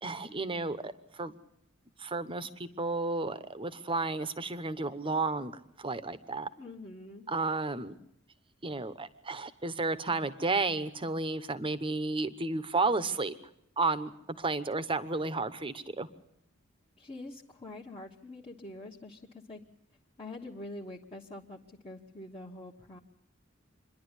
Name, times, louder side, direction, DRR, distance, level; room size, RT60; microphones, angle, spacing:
voice 1, 0.0-1.3 2.0-5.5 5.8-6.5 7.3-8.0 8.6-13.3 13.8-14.1 14.4-16.1, right 3 dB, 25° right, 13 dB, 0.9 m, -32 dB
voice 2, 6.6-7.3 17.0-19.6 20.2-23.0, left 2 dB, 30° left, -4 dB, 1.3 m, -45 dB
26.0 x 11.0 x 9.8 m, 0.81 s
head